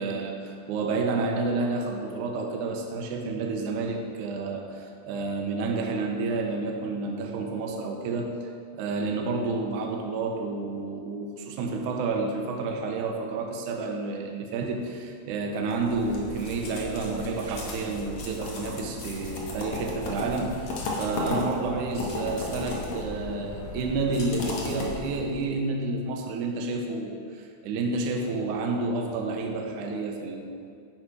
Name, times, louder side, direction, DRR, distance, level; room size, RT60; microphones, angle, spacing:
voice 1, 0.0-8.4 8.7-30.6, right 3 dB, 80° right, 1 dB, 1.8 m, -30 dB
sound 1, 15.7-25.4, left 2 dB, 75° left, 1.3 m, -35 dB
10.0 x 4.8 x 5.0 m, 2.3 s
omnidirectional pair, 4.5 m